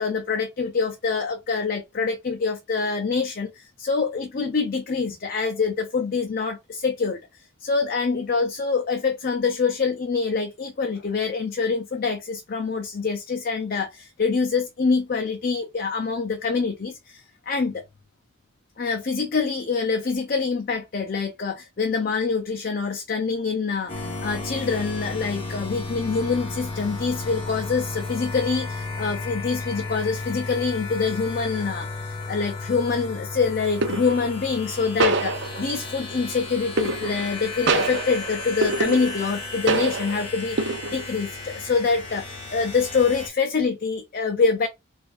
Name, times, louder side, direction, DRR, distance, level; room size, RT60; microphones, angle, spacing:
voice 1, 0.0-7.2 7.6-17.8 18.8-44.7, left 4 dB, 45° left, 0.5 m, -25 dB
sound 1, 23.9-43.3, left 3 dB, 25° left, 0.9 m, -34 dB
sound 2, 32.2-32.5 33.8-34.3 35.0-35.9 36.8-37.4 37.7-39.4 39.7-40.2 40.6-41.2, right 3 dB, 60° right, 0.6 m, -25 dB
4.5 x 2.5 x 2.5 m
head